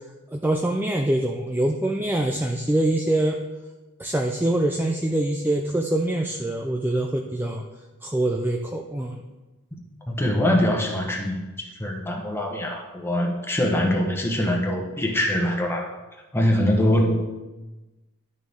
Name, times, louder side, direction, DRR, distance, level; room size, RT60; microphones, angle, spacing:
voice 1, 0.3-3.4 4.0-7.6 8.0-9.2, right 1 dB, 10° right, 2 dB, 0.4 m, -24 dB
voice 2, 10.1-15.9 16.3-17.2, left 1 dB, 10° left, 0 dB, 1.1 m, -23 dB
11.0 x 6.4 x 3.6 m, 1.1 s
head